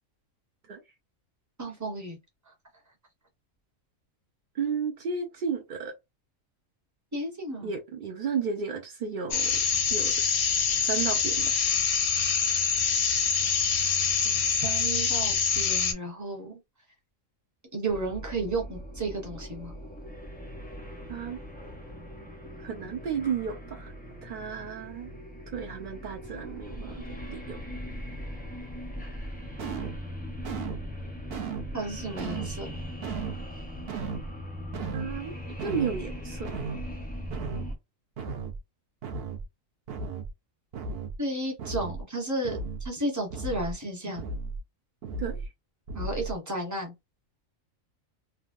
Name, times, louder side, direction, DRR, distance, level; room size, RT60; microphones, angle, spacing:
voice 1, 1.6-2.2 7.1-7.7 14.2-16.6 17.7-19.7 31.7-32.7 41.2-44.3 45.9-46.9, right 2 dB, 15° right, 0.7 m, -33 dB
voice 2, 4.5-5.9 7.6-10.1 10.8-11.7 21.1-21.4 22.6-23.9 24.2-25.1 25.5-27.6 34.9-35.3 35.6-36.6 45.2-45.5, right 6 dB, 85° right, 0.4 m, -33 dB
sound 1, 9.3-15.9, left 6 dB, 60° left, 0.6 m, -25 dB
sound 2, 17.9-37.8, equal, 10° left, 0.4 m, -40 dB
sound 3, 29.6-30.0 30.4-30.9 31.3-31.7 32.2-32.6 33.0-33.4 33.9-34.3 34.7-35.2 35.6-36.0 36.4-36.9 37.3-37.7 38.2-38.6 39.0-39.4 39.9-40.3 40.7-41.2 41.6-42.0 42.4-42.9 43.3-43.7 44.2-44.6 45.0-45.5 45.9-46.4, right 4 dB, 55° right, 0.8 m, -35 dB
3.3 x 2.1 x 2.5 m
omnidirectional pair, 1.4 m